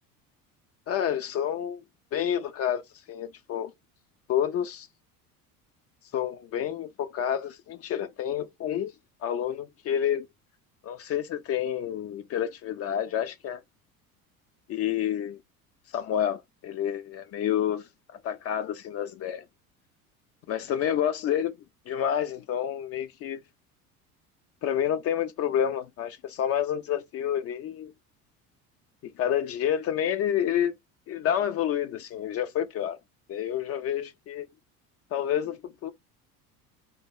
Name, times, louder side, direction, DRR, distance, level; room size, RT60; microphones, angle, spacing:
voice 1, 0.9-1.8 2.1-3.7 4.3-4.9 6.1-8.9 9.2-10.3 10.8-13.6 14.7-15.4 15.9-17.8 18.2-19.4 20.5-21.5 21.9-23.4 24.6-27.9 29.0-30.8 31.1-33.0 33.3-34.5 35.1-35.9, left 10 dB, 35° left, 0.5 m, -29 dB
3.5 x 2.2 x 3.3 m
figure-of-eight pair, 65°, 44 cm